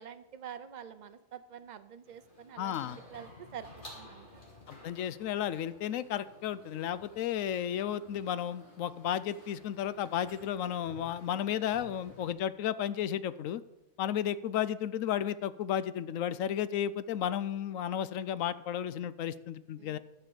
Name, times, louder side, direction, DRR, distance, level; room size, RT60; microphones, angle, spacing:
voice 1, 0.0-3.7 3.9-4.3 19.8-20.0, right 8 dB, 45° right, 11 dB, 0.6 m, -47 dB
sound 1, 2.0-12.3, left 2 dB, 40° left, 2.5 m, -54 dB
voice 2, 2.6-3.0 4.7-13.6 14.0-20.0, left 10 dB, 80° left, 15 dB, 0.9 m, -33 dB
12.0 x 5.8 x 7.1 m, 0.99 s
omnidirectional pair, 1.4 m